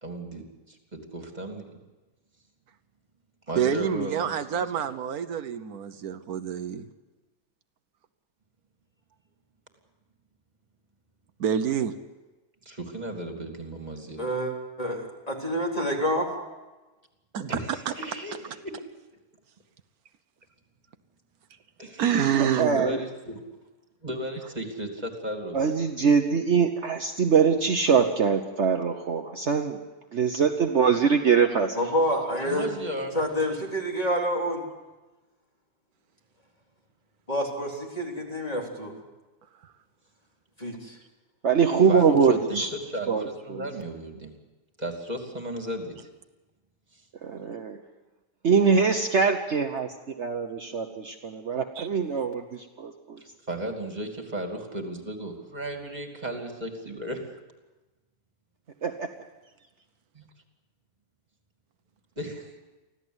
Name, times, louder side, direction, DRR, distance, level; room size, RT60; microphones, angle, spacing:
voice 1, 0.0-1.8 3.5-4.6 12.6-14.3 17.4-18.7 21.8-22.2 22.7-23.4 24.0-25.6 32.4-33.2 41.9-44.3 44.8-46.1 53.2-57.3 60.1-60.3 62.2-62.5, right 1 dB, 30° right, 3 dB, 2.9 m, -35 dB
voice 2, 3.6-6.8 11.4-11.9 17.3-17.5 22.0-22.8 51.8-51.9, right 8 dB, 80° right, 10 dB, 1.4 m, -27 dB
voice 3, 14.2-14.5 14.8-16.3 31.8-32.7 33.1-34.6 37.3-39.0 40.6-41.0, equal, 25° left, -1 dB, 3.5 m, -28 dB
voice 4, 22.4-23.0 25.5-29.8 30.1-31.8 41.4-42.7 43.1-43.6 47.2-47.8 48.4-49.9 50.2-53.2 58.8-59.1, right 6 dB, 50° right, 4 dB, 1.3 m, -23 dB
24.5 x 15.5 x 8.0 m, 1.1 s
omnidirectional pair, 1.6 m